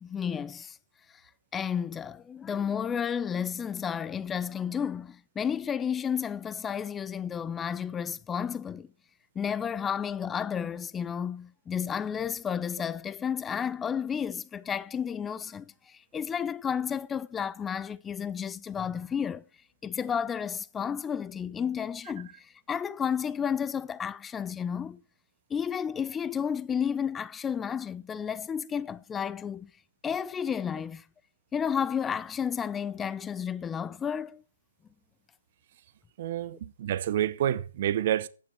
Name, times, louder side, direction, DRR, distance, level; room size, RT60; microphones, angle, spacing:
voice 1, 0.0-0.8 1.5-8.9 9.4-19.4 19.8-25.0 25.5-29.7 30.0-31.0 31.5-34.4, left 7 dB, 10° left, 0.6 m, -32 dB
voice 2, 36.2-38.3, right 11 dB, 40° right, 1.0 m, -28 dB
15.0 x 10.0 x 4.7 m
figure-of-eight pair, 130°, 0 cm